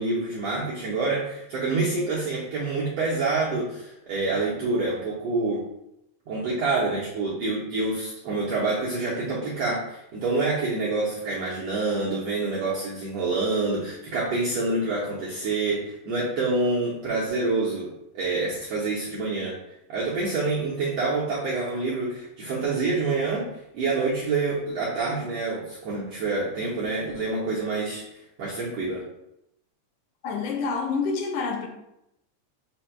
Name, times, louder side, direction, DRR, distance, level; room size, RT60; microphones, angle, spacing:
voice 1, 0.0-5.6 6.3-17.9 18.1-19.6 19.9-28.0 28.4-29.0, right 3 dB, 75° right, 1.4 m, -27 dB
voice 2, 30.2-31.7, left 4 dB, 80° left, 2.0 m, -27 dB
5.1 x 2.2 x 4.3 m
omnidirectional pair, 3.8 m